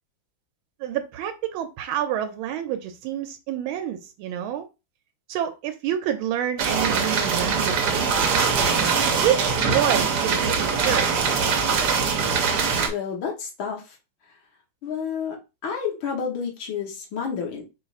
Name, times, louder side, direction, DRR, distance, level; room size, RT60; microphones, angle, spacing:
voice 1, 0.8-4.7 5.3-8.6 9.2-11.2, right 10 dB, 90° right, 1.4 m, -28 dB
sound 1, 6.6-12.9, right 5 dB, 65° right, 1.3 m, -22 dB
voice 2, 12.9-14.0 14.8-15.4 15.6-17.6, left 6 dB, 90° left, 1.9 m, -30 dB
5.1 x 2.4 x 4.1 m
omnidirectional pair, 2.2 m